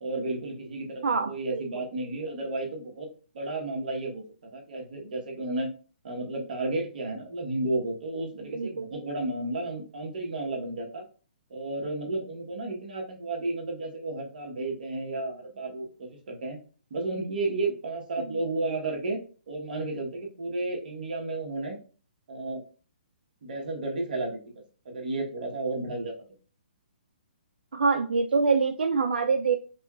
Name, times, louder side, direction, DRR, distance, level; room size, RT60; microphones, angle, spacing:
voice 1, 0.0-3.1 3.3-4.2 4.5-5.7 6.0-11.0 11.5-16.6 16.9-21.8 22.3-22.6 23.4-26.1, right 2 dB, 60° right, 0 dB, 1.3 m, -32 dB
voice 2, 1.0-1.8 8.5-8.9 18.2-18.3 27.7-29.6, right 4 dB, 90° right, 6 dB, 0.4 m, -25 dB
4.9 x 2.3 x 2.4 m, 0.38 s
hypercardioid pair, 155°, 5 cm